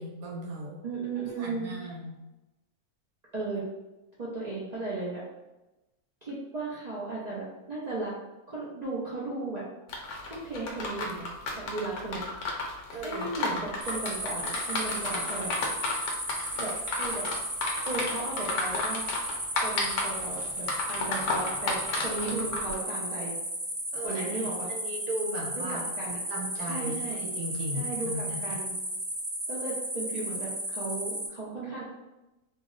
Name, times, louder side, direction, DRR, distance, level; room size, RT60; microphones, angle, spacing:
voice 1, 0.0-0.8 1.4-2.2 12.9-13.7 23.9-25.9 26.3-28.6, right 1 dB, 90° right, -2 dB, 1.2 m, -37 dB
voice 2, 0.8-1.7 3.3-3.7 4.2-5.2 6.2-8.1 8.5-9.6 10.3-11.3 11.6-12.2 13.0-15.5 16.6-16.7 17.0-17.3 17.8-19.1 19.6-23.3 24.0-24.7 25.6-26.2 26.7-27.2 27.7-28.7 29.5-31.8, right 3 dB, 70° right, -7 dB, 0.4 m, -35 dB
sound 1, 9.9-22.7, left 2 dB, 65° left, 0.9 m, -32 dB
sound 2, 13.8-31.3, right 1 dB, 45° right, 0.9 m, -35 dB
2.7 x 2.0 x 3.7 m, 1.0 s
omnidirectional pair, 1.5 m